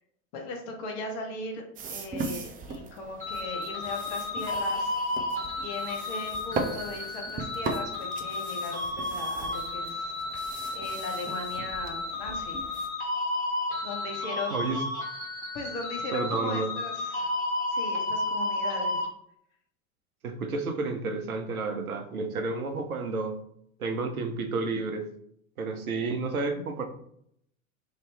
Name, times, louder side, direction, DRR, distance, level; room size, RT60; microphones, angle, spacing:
voice 1, 0.3-1.6 1.9-5.0 5.6-10.1 10.7-12.7 13.8-14.6 15.5-17.3 17.7-19.0, left 3 dB, 50° left, 2 dB, 1.1 m, -38 dB
sound 1, 1.7-12.9, right 3 dB, 20° right, 0.4 m, -39 dB
sound 2, 3.2-19.1, left 2 dB, 20° left, 1.5 m, -32 dB
voice 2, 14.5-14.8 16.1-16.7 20.2-23.4 23.8-25.0 25.6-26.9, right 3 dB, 85° right, 5 dB, 0.7 m, -31 dB
2.9 x 2.7 x 3.3 m, 0.69 s
figure-of-eight pair, 80°, 42 cm